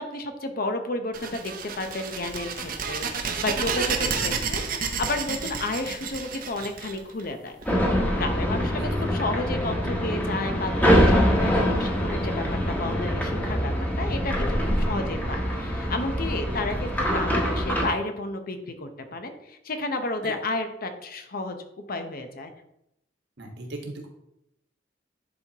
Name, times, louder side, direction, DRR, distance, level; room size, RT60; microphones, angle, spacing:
voice 1, 0.0-13.7 14.0-21.6 21.9-22.5, left 2 dB, 55° left, 7 dB, 0.8 m, -32 dB
sound 1, 1.1-7.6, right 5 dB, 50° right, 0.8 m, -30 dB
voice 2, 4.0-4.4 8.8-8.9 16.5-16.6 20.2-20.3 23.4-24.1, right 1 dB, 70° right, 2 dB, 1.4 m, -38 dB
sound 2, 7.7-17.9, equal, 10° left, 1.2 m, -24 dB
10.5 x 4.6 x 2.9 m, 0.82 s
head